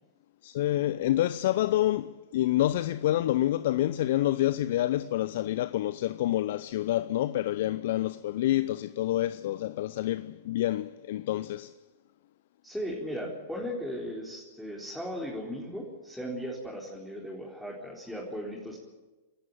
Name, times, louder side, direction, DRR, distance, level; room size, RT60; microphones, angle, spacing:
voice 1, 0.4-11.7, left 14 dB, 60° left, 0.6 m, -28 dB
voice 2, 12.6-18.8, equal, 5° left, 4.5 m, -37 dB
27.5 x 14.0 x 9.0 m
figure-of-eight pair, 105°, 0 cm